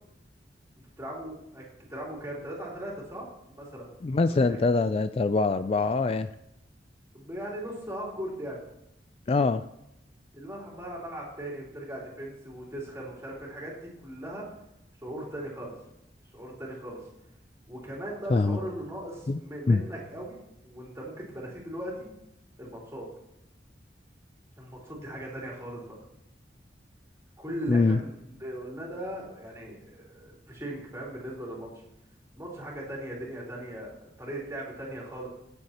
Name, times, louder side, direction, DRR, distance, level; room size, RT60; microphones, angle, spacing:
voice 1, 1.0-1.6 1.9-3.3 3.6-3.9 4.3-4.6 7.1-8.6 10.3-14.4 15.0-15.7 16.3-17.0 17.7-22.1 22.6-23.0 24.6-25.8 27.4-31.7 32.4-35.3, right 1 dB, 15° right, -4 dB, 3.4 m, -38 dB
voice 2, 4.0-6.3 9.3-9.6 18.3-18.6 19.3-19.4 19.7-19.8 27.7-28.0, left 3 dB, 35° left, 11 dB, 0.3 m, -23 dB
19.5 x 7.9 x 2.9 m, 0.80 s
head